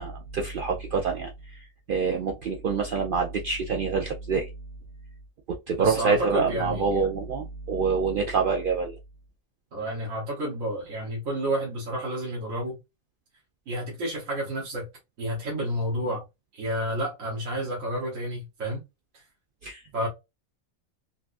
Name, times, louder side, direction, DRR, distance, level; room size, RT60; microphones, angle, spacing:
voice 1, 0.0-4.5 5.5-9.0 19.6-19.8, right 5 dB, 90° right, 0.4 m, -26 dB
voice 2, 5.8-6.9 9.7-12.8 13.7-14.8 15.2-16.2 16.5-18.8 19.1-19.2 19.9-20.1, right 1 dB, 70° right, 1.5 m, -30 dB
4.1 x 2.3 x 2.4 m
omnidirectional pair, 1.4 m